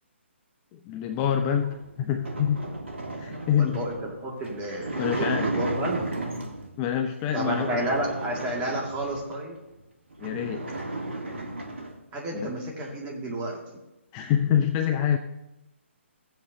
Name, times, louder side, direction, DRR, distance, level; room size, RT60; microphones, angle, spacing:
voice 1, 0.7-2.7 3.2-3.8 5.0-5.5 6.8-7.8 10.2-10.7 12.3-12.6 14.1-15.2, left 9 dB, 20° left, 7 dB, 0.4 m, -26 dB
sound 1, 1.5-6.7 7.3-9.3 9.8-9.9 10.1-12.0, right 2 dB, 70° right, 1.5 m, -34 dB
voice 2, 3.5-3.9 4.2-6.0 7.3-9.6 12.1-13.6, right 1 dB, 20° right, -2 dB, 2.0 m, -31 dB
15.0 x 7.8 x 2.7 m, 0.96 s
figure-of-eight pair, 135°, 7 cm